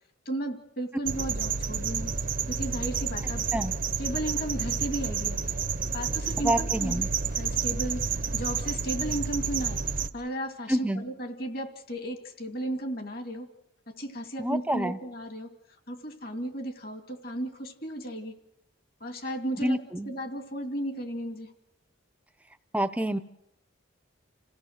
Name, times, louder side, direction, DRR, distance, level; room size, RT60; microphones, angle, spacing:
voice 1, 0.3-2.1 2.5-3.5 4.0-5.4 5.9-7.0 7.4-8.0 8.3-9.8 10.1-13.5 13.9-15.5 15.9-18.3 19.0-19.8 20.1-21.5, right 1 dB, 45° left, 6 dB, 2.3 m, -34 dB
sound 1, 1.1-10.1, right 6 dB, 45° right, 0.7 m, -30 dB
voice 2, 6.4-7.1 10.7-11.1 14.4-15.0 19.6-20.1 22.7-23.2, right 1 dB, 5° right, 10 dB, 0.7 m, -27 dB
28.0 x 16.0 x 6.5 m, 0.82 s
head